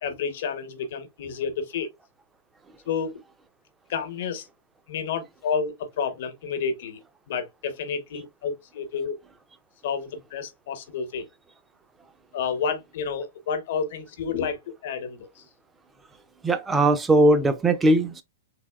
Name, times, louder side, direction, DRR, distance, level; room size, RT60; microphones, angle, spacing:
voice 1, 0.0-1.9 2.9-3.2 3.9-4.5 4.9-7.0 7.3-9.1 9.8-11.3 12.3-15.4, left 6 dB, 60° left, 1.0 m, -30 dB
voice 2, 16.4-18.2, right 2 dB, 15° right, 0.5 m, -19 dB
3.5 x 2.9 x 2.3 m
hypercardioid pair, 125°, 0 cm